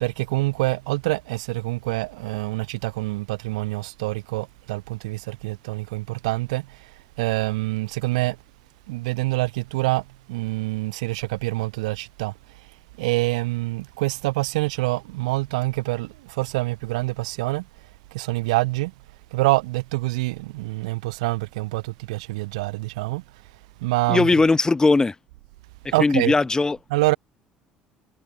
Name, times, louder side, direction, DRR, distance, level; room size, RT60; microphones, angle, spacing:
voice 1, 0.0-6.9 7.2-8.4 8.9-12.3 13.0-17.6 18.1-18.9 19.3-23.2 23.8-24.3 25.9-26.3 26.9-27.2, right 21 dB, 75° right, 0.3 m, -26 dB
voice 2, 24.1-25.1 25.8-26.8, left 3 dB, 20° left, 0.7 m, -19 dB
hypercardioid pair, 60°, 4 cm